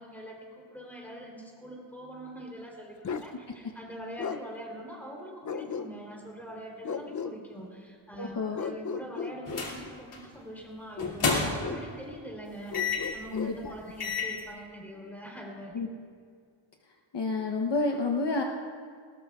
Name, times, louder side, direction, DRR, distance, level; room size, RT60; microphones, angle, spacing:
voice 1, 0.0-15.8, equal, 5° left, -2 dB, 3.4 m, -44 dB
Bark, 3.0-3.3 4.2-4.4 5.5-6.2 6.8-7.4 8.6-9.7 11.0-11.9 12.7-13.6, left 5 dB, 40° left, 0.5 m, -35 dB
voice 2, 8.2-8.6 13.3-13.7 15.7-15.9 17.1-18.4, left 3 dB, 55° left, 2 dB, 1.0 m, -29 dB
sound 1, 9.5-9.8 10.1-10.3 11.0-11.8 12.7-13.2 13.6-13.7 14.0-14.4, left 4 dB, 90° left, 2.6 m, -30 dB
19.5 x 18.5 x 2.4 m, 2.1 s
wide cardioid pair, 125°, 50 cm